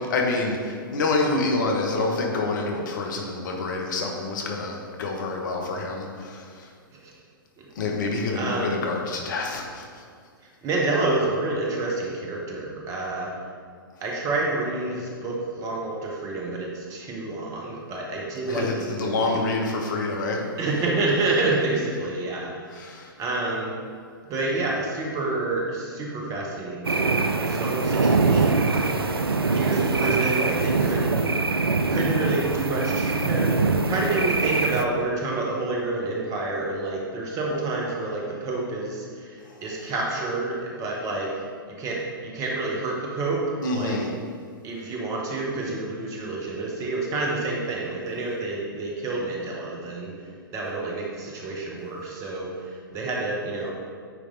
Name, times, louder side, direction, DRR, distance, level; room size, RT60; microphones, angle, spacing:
voice 1, 0.1-6.7 7.8-9.9 18.5-20.4 22.7-23.1 43.6-44.1, left 3 dB, 55° left, 1 dB, 1.1 m, -27 dB
voice 2, 8.3-8.8 10.6-13.3 14.0-19.4 20.6-23.8 24.3-31.4 31.9-41.3 41.7-43.4 43.7-44.0 44.6-50.1 50.5-53.7, right 2 dB, 30° right, -2 dB, 1.2 m, -28 dB
sound 1, 26.8-34.8, right 3 dB, 90° right, 0.4 m, -23 dB
9.2 x 3.3 x 4.0 m, 2.2 s
figure-of-eight pair, 110°, 12 cm